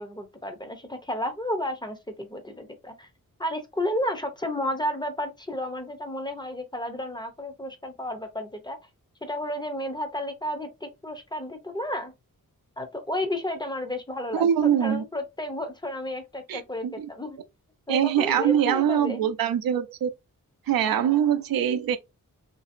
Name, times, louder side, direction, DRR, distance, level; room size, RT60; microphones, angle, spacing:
voice 1, 0.0-3.1 3.4-8.8 9.2-12.1 12.8-17.4 17.9-19.2, left 1 dB, 15° left, 0.5 m, -32 dB
voice 2, 14.3-15.0 16.5-17.1 17.9-20.1 20.7-22.0, right 9 dB, 85° right, 0.5 m, -23 dB
2.7 x 2.6 x 2.5 m
wide cardioid pair, 140°, 34 cm